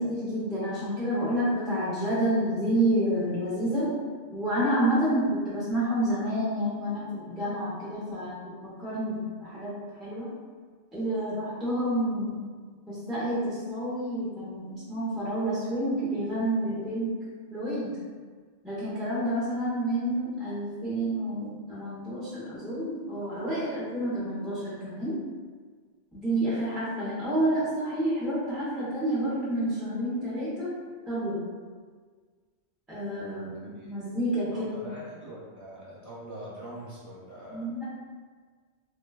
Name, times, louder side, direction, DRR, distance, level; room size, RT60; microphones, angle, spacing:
voice 1, 0.0-3.9 4.3-9.7 10.0-10.3 10.9-12.4 12.9-17.1 17.5-18.0 18.6-25.1 26.1-30.7 31.1-31.4 32.9-34.9 37.5-37.8, right 1 dB, ahead, -11 dB, 0.5 m, -29 dB
voice 2, 34.5-37.7, right 1 dB, 15° right, -10 dB, 0.8 m, -43 dB
3.7 x 2.2 x 2.3 m, 1.6 s
omnidirectional pair, 1.3 m